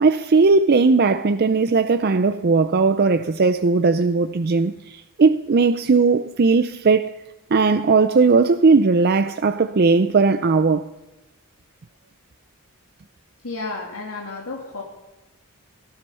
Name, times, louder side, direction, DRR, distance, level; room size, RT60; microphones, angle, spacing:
voice 1, 0.0-7.1 7.5-10.9, right 4 dB, 45° right, 0.5 m, -18 dB
voice 2, 13.4-14.8, left 3 dB, 85° left, 2.5 m, -32 dB
18.0 x 14.0 x 5.6 m
head